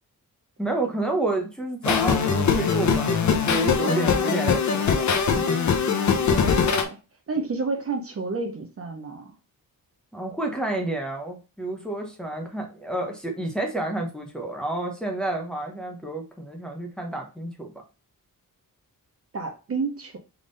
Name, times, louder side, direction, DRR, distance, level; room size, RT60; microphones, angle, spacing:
voice 1, 0.6-5.1 5.8-5.9 10.1-17.7, right 2 dB, ahead, 0.8 m, -30 dB
sound 1, 1.8-6.8, left 6 dB, 55° left, 0.7 m, -22 dB
voice 2, 3.8-4.4 5.9-7.0 7.3-9.3 19.3-20.2, right 4 dB, 40° right, 0.7 m, -31 dB
3.7 x 3.5 x 3.9 m
wide cardioid pair, 160°, 35 cm